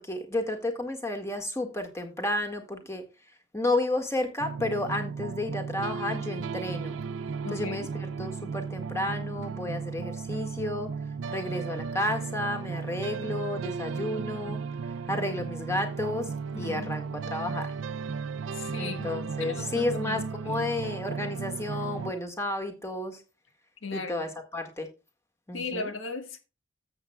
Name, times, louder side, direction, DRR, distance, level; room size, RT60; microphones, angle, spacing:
voice 1, 0.0-3.0 3.5-7.0 7.5-10.9 11.3-14.6 15.1-16.3 16.6-17.7 18.8-23.2 23.9-24.9 25.5-25.9, left 1 dB, 15° left, 1.7 m, -32 dB
sound 1, 4.4-22.1, right 5 dB, 70° right, 0.4 m, -35 dB
voice 2, 7.4-7.9 16.5-16.9 18.5-19.1 19.4-20.7 23.8-24.3 25.5-26.4, left 3 dB, 75° left, 1.6 m, -37 dB
13.5 x 8.0 x 2.3 m
head